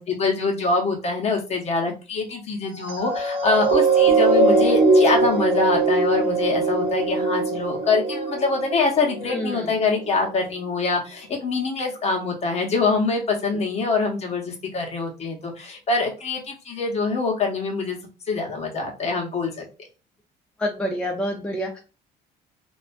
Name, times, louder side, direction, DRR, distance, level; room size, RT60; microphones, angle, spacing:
voice 1, 0.0-18.0 18.3-19.6, left 3 dB, 40° left, 1 dB, 0.8 m, -24 dB
sound 1, 2.8-9.5 10.1-10.2, right 3 dB, 60° right, 0.9 m, -21 dB
voice 2, 9.2-9.7 20.6-21.8, equal, 5° left, 0 dB, 0.5 m, -27 dB
2.4 x 2.2 x 2.4 m, 0.32 s
cardioid pair, 110°, 17 cm